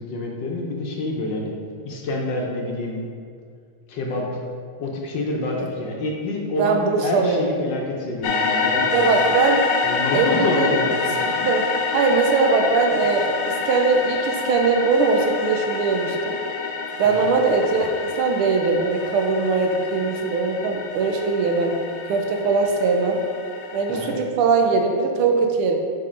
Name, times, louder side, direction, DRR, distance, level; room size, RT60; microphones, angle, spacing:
voice 1, 0.0-1.5 1.8-3.0 3.9-4.3 4.8-9.1 9.8-10.9 17.0-17.2 23.9-24.2, left 2 dB, 65° left, -1 dB, 1.3 m, -27 dB
voice 2, 6.6-7.5 8.9-9.6 10.1-10.9 11.3-16.4 17.0-21.8 22.1-23.2 23.7-25.7, right 4 dB, 80° right, 3 dB, 1.5 m, -21 dB
sound 1, 8.2-24.2, left 5 dB, 85° left, 1.5 m, -27 dB
6.3 x 3.8 x 5.0 m, 2.2 s
omnidirectional pair, 2.4 m